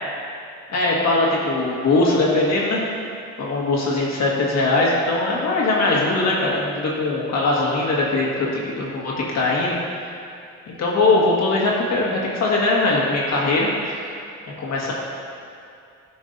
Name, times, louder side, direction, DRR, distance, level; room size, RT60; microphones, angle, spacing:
voice 1, 0.7-2.8 3.4-10.2 10.8-14.1 14.6-14.9, left 2 dB, 60° left, -4 dB, 1.8 m, -21 dB
11.5 x 5.2 x 2.6 m, 2.6 s
cardioid pair, 90°, 30 cm